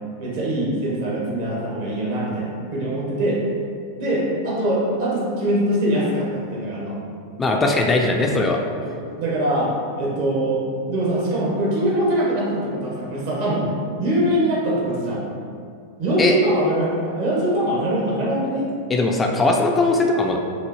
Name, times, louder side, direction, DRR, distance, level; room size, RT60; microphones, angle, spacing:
voice 1, 0.2-3.4 4.0-7.0 8.8-15.2 16.0-18.7, right 1 dB, 50° right, -4 dB, 1.2 m, -23 dB
voice 2, 7.4-8.6 16.2-16.4 18.9-20.4, left 2 dB, 15° left, 1 dB, 0.3 m, -19 dB
5.2 x 2.6 x 2.8 m, 2.3 s
figure-of-eight pair, 90°, 0 cm